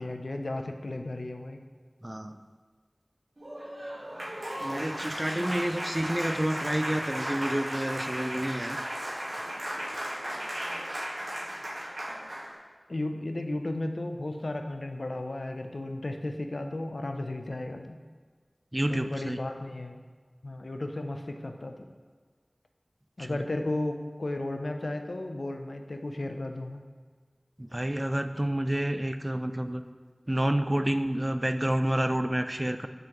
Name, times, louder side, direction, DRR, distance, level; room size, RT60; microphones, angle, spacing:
voice 1, 0.0-1.6 12.9-18.0 18.9-20.0 20.4-21.9 23.2-26.8, left 2 dB, 75° left, 5 dB, 0.5 m, -34 dB
voice 2, 2.0-2.4 4.6-8.8 18.7-19.4 23.2-23.4 27.6-29.8 30.3-32.9, right 1 dB, 25° right, 9 dB, 0.3 m, -29 dB
Applause, 3.4-12.5, equal, 65° right, 1.5 m, -35 dB
6.8 x 6.1 x 3.0 m, 1.5 s
wide cardioid pair, 45°, 0 cm